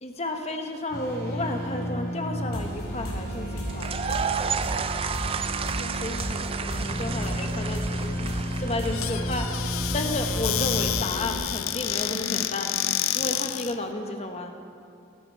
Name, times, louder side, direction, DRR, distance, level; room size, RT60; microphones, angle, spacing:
voice 1, 0.0-3.9 5.8-9.5 9.9-14.5, left 2 dB, 30° left, 5 dB, 1.1 m, -32 dB
sound 1, 0.9-11.3, equal, 50° left, 4.3 m, -31 dB
sound 2, 3.7-9.7, right 6 dB, 25° right, 0.3 m, -32 dB
Squeak / Cupboard open or close, 8.9-13.8, left 12 dB, 85° left, 0.4 m, -29 dB
18.5 x 11.0 x 4.7 m, 2.4 s
head